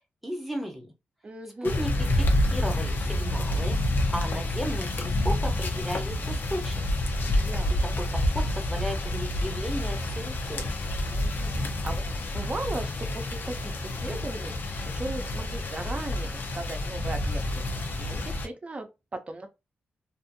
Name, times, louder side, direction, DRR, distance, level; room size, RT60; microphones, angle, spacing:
voice 1, 0.2-0.9 1.6-3.8 4.1-6.8 7.8-10.7, equal, ahead, 0.8 m, -35 dB
voice 2, 1.2-1.8 7.4-8.0 11.1-12.0 12.3-14.5 14.9-17.6 18.0-18.9 19.3-19.5, right 2 dB, 30° right, 0.6 m, -37 dB
sound 1, 1.6-18.5, left 1 dB, 60° left, 0.7 m, -28 dB
2.6 x 2.6 x 2.6 m
wide cardioid pair, 110°, 4 cm